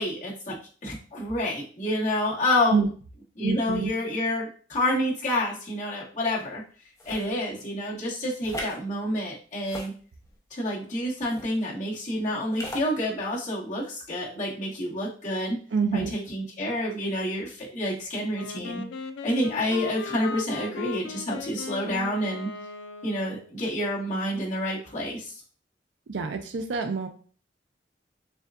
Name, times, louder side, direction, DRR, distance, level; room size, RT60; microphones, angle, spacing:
voice 1, 0.0-2.8 3.4-6.6 7.0-9.9 10.5-15.6 15.9-18.8 19.2-22.5 23.0-25.2, left 1 dB, 45° left, -6 dB, 1.6 m, -28 dB
voice 2, 3.4-3.9 15.7-16.1 26.1-27.1, right 5 dB, 80° right, 5 dB, 0.4 m, -27 dB
sound 1, 7.0-7.3 8.4-8.8 9.6-10.4 11.2-11.5 12.5-12.9, equal, 20° left, 0.8 m, -37 dB
Wind instrument woodwind instrument, 18.3-23.5, left 5 dB, 90° left, 0.4 m, -38 dB
6.8 x 2.3 x 2.4 m, 0.41 s
head